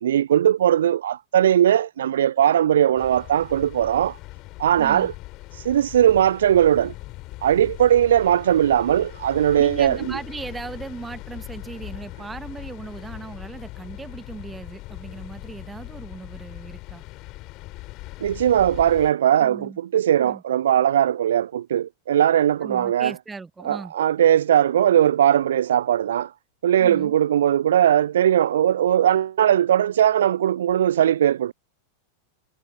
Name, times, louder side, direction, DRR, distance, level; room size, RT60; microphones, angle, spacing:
voice 1, 0.0-4.2 4.6-5.1 5.5-6.9 7.4-10.2 18.2-23.1 23.6-26.3 26.6-31.5, right 10 dB, 60° right, 0.4 m, -19 dB
sound 1, 3.0-19.1, left 20 dB, 40° left, 3.3 m, -40 dB
voice 2, 4.8-5.1 9.6-17.0 19.4-19.8 20.2-20.4 22.6-23.9 26.8-27.1, right 4 dB, 10° right, 2.0 m, -37 dB
figure-of-eight pair, 90°, 0 cm